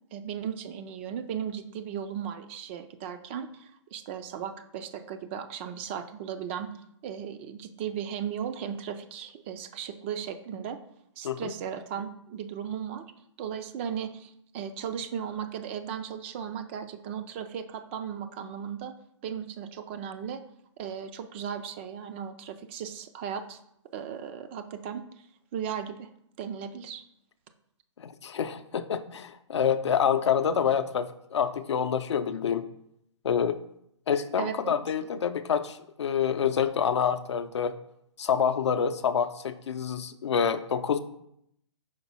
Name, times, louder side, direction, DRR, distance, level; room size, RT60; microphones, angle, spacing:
voice 1, 0.1-6.7 7.0-10.8 11.2-13.1 13.4-18.9 19.2-20.4 20.8-23.6 23.9-25.3 25.5-26.1 26.4-27.0 34.4-34.8, right 8 dB, 25° right, 8 dB, 0.4 m, -36 dB
voice 2, 28.0-32.7 33.2-33.6 34.1-37.8 38.2-41.0, left 7 dB, 65° left, 11 dB, 0.5 m, -27 dB
5.1 x 4.2 x 5.4 m, 0.75 s
hypercardioid pair, 140°, 16 cm